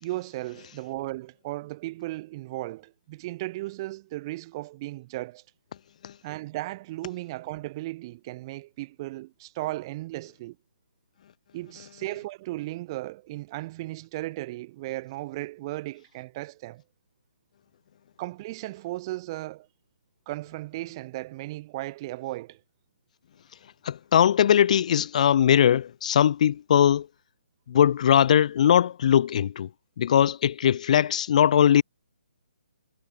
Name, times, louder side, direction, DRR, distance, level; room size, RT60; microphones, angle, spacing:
voice 1, 0.0-5.4 6.2-10.6 11.5-16.8 18.2-19.7 20.3-22.6, right 18 dB, 25° right, 0.5 m, -36 dB
voice 2, 23.8-27.1 27.7-29.7 30.0-31.8, left 9 dB, 45° left, 0.4 m, -20 dB
hypercardioid pair, 155°, 5 cm